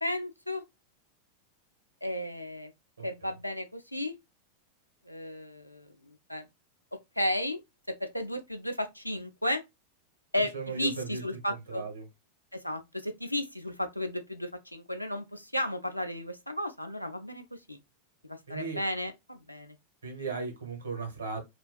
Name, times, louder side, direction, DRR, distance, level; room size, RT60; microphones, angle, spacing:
voice 1, 0.0-0.6 2.0-2.7 3.0-4.1 5.1-5.9 6.3-6.5 7.2-7.6 7.9-9.6 10.3-10.5 10.8-11.8 12.6-17.8 18.3-19.7, left 1 dB, 90° left, 0.4 m, -33 dB
voice 2, 3.0-3.4 10.4-12.1 18.5-18.8 20.0-21.4, right 4 dB, 75° right, 1.0 m, -37 dB
2.5 x 2.2 x 2.3 m
figure-of-eight pair, 90°, 0 cm